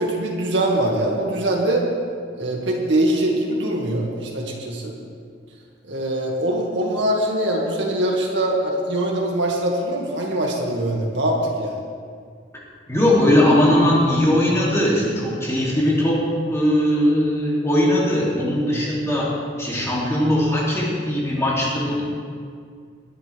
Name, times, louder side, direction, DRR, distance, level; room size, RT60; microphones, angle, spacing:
voice 1, 0.0-1.8 2.3-4.9 5.9-11.8, right 1 dB, 65° right, -2 dB, 2.2 m, -23 dB
voice 2, 12.9-16.2 16.5-19.3 19.6-22.0, left 1 dB, 15° left, -6 dB, 2.9 m, -19 dB
20.5 x 11.0 x 3.5 m, 2.1 s
head